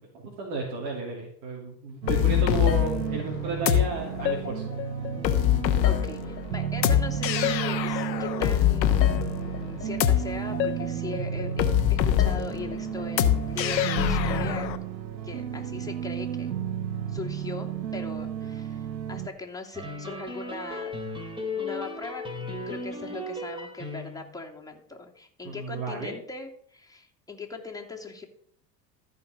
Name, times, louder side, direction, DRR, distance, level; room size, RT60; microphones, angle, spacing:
voice 1, 0.4-4.7 25.4-26.1, right 3 dB, 65° right, -2 dB, 2.9 m, -33 dB
sound 1, 2.0-19.3, right 9 dB, 90° right, 0.9 m, -33 dB
sound 2, 2.1-14.8, left 11 dB, 85° left, 1.1 m, -25 dB
voice 2, 5.8-14.7 15.2-16.5 17.1-20.9 21.6-28.3, left 3 dB, 5° left, 0 dB, 2.7 m, -39 dB
sound 3, 19.7-24.4, left 2 dB, 10° right, 3.3 m, -36 dB
14.0 x 5.6 x 6.7 m, 0.64 s
hypercardioid pair, 75°, 50 cm